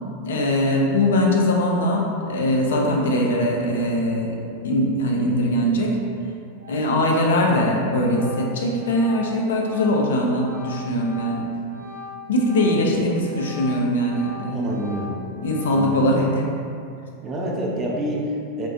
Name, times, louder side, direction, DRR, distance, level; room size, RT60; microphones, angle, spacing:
voice 1, 0.2-4.4 4.6-6.0 6.7-11.5 12.3-14.8 15.4-16.3, left 1 dB, 60° left, -1 dB, 0.3 m, -21 dB
Organ, 6.1-6.3 6.6-12.9 13.2-16.1, left 5 dB, 80° right, 0.7 m, -40 dB
voice 2, 12.7-13.2 14.5-15.3 15.6-16.3 17.2-18.7, right 1 dB, 25° right, -2 dB, 0.4 m, -28 dB
2.3 x 2.1 x 2.5 m, 2.4 s
figure-of-eight pair, 90°, 0 cm